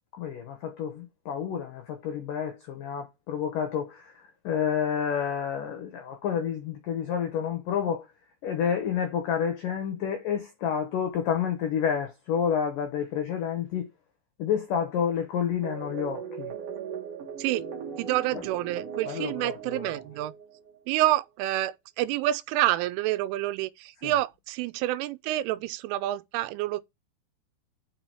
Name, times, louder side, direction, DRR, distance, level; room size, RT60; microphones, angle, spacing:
voice 1, 0.1-8.1 8.4-13.9 14.4-16.5 19.1-20.0 24.0-24.1, left 8 dB, 80° left, 1.9 m, -29 dB
sound 1, 15.6-20.8, right 7 dB, 70° right, 1.4 m, -38 dB
voice 2, 18.0-20.3 20.9-26.8, right 14 dB, 85° right, 3.1 m, -28 dB
6.0 x 5.8 x 4.7 m
omnidirectional pair, 5.5 m